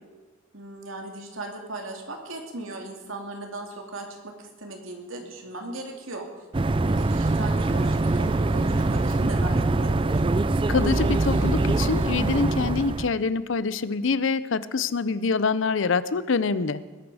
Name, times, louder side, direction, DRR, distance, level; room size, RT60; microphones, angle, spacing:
voice 1, 0.5-6.3 6.9-10.2, right 2 dB, 85° right, 3 dB, 2.6 m, -38 dB
sound 1, 5.9-9.5 9.8-10.0 10.4-10.5 10.9-12.4, equal, 55° right, 6.5 m, -46 dB
sound 2, 6.5-13.1, right 2 dB, 25° right, 0.4 m, -23 dB
voice 2, 10.7-16.8, left 4 dB, 75° left, 16 dB, 0.6 m, -25 dB
20.0 x 11.5 x 4.9 m, 1.3 s
head